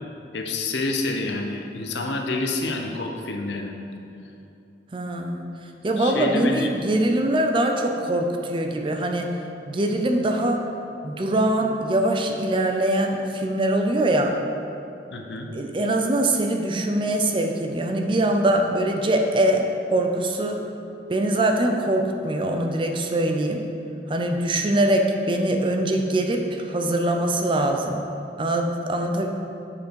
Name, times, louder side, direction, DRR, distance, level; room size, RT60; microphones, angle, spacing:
voice 1, 0.3-3.8 6.0-6.7 15.1-15.5, left 2 dB, 85° left, 2 dB, 0.8 m, -28 dB
voice 2, 4.9-5.4 5.8-9.3 9.7-10.6 11.0-14.4 15.5-20.6 21.1-23.6 24.1-28.0 28.4-29.3, right 1 dB, 30° right, 3 dB, 0.5 m, -23 dB
7.0 x 5.1 x 4.6 m, 2.8 s
head